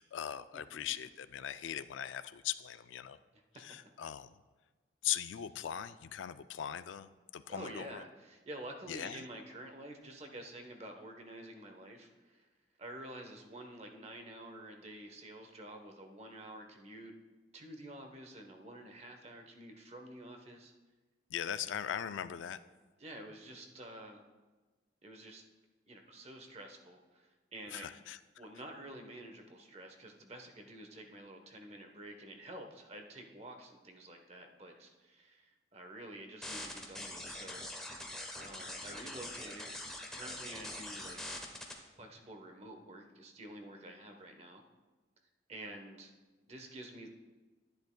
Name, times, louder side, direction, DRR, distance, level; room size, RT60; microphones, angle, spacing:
voice 1, 0.0-3.2 3.6-4.3 5.0-8.0 8.9-9.2 21.3-22.6 27.7-28.2, left 10 dB, 85° left, 13 dB, 0.4 m, -40 dB
voice 2, 7.5-12.5 12.8-17.1 17.5-20.7 23.0-24.2 25.0-25.4 25.9-28.0 28.4-38.1 38.3-39.7 40.1-41.2 42.0-44.6 45.5-46.1 46.5-47.1, right 1 dB, 35° right, 4 dB, 0.9 m, -49 dB
sound 1, 36.4-41.7, left 1 dB, 5° left, 0.9 m, -43 dB
11.5 x 10.5 x 2.2 m, 1.3 s
head